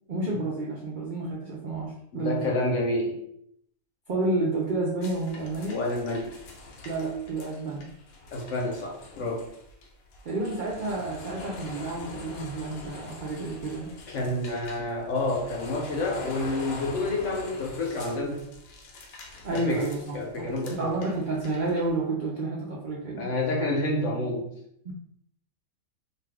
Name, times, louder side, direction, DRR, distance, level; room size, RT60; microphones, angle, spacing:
voice 1, 0.1-2.5 4.1-5.8 6.8-7.9 10.2-13.9 19.4-23.3 24.8-24.9, right 2 dB, 85° right, -3 dB, 0.4 m, -30 dB
voice 2, 2.1-3.2 5.7-6.4 8.3-9.5 14.1-18.4 19.5-21.1 23.2-24.5, left 2 dB, 65° left, -1 dB, 1.0 m, -29 dB
sound 1, 5.0-21.9, left 3 dB, 80° left, 1.0 m, -44 dB
2.5 x 2.3 x 3.4 m, 0.72 s
omnidirectional pair, 1.5 m